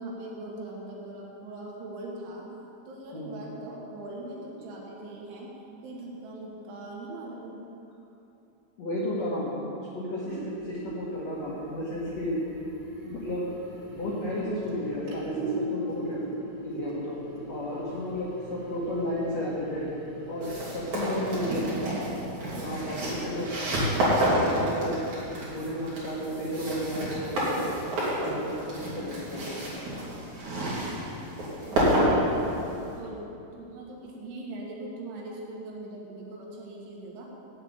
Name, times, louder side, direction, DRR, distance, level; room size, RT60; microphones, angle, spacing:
voice 1, 0.0-2.5 2.9-5.5 5.8-7.6 31.6-32.6 33.0-37.3, right 2 dB, 75° right, -2 dB, 3.8 m, -41 dB
voice 2, 8.8-12.4 13.0-13.5 13.9-16.2 16.6-17.2 17.5-19.9 20.3-22.1 22.5-23.5 23.9-25.0 25.4-27.6 28.2-29.7, left 1 dB, 80° left, -6 dB, 1.5 m, -33 dB
sound 1, 10.3-25.6, right 2 dB, 60° right, 4.1 m, -41 dB
sound 2, 20.4-32.9, right 1 dB, 45° right, 3.6 m, -29 dB
8.9 x 8.0 x 8.7 m, 2.8 s
omnidirectional pair, 5.6 m